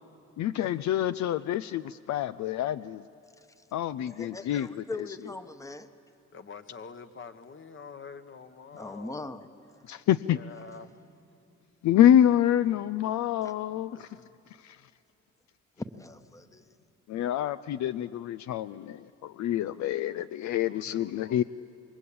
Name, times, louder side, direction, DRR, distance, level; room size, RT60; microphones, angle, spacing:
voice 1, 0.4-3.0 3.7-4.8 9.9-10.4 11.8-14.1 14.6-14.8 17.1-21.4, left 11 dB, 70° left, 13 dB, 0.5 m, -26 dB
voice 2, 4.1-5.9 8.8-9.8 13.4-13.5 15.8-16.7, left 2 dB, 10° left, 9 dB, 1.1 m, -41 dB
voice 3, 6.3-9.2 10.2-11.0 13.9-14.4 20.5-21.4, left 5 dB, 40° left, 9 dB, 1.4 m, -46 dB
27.5 x 22.0 x 8.7 m, 2.5 s
cardioid pair, 90°, 30 cm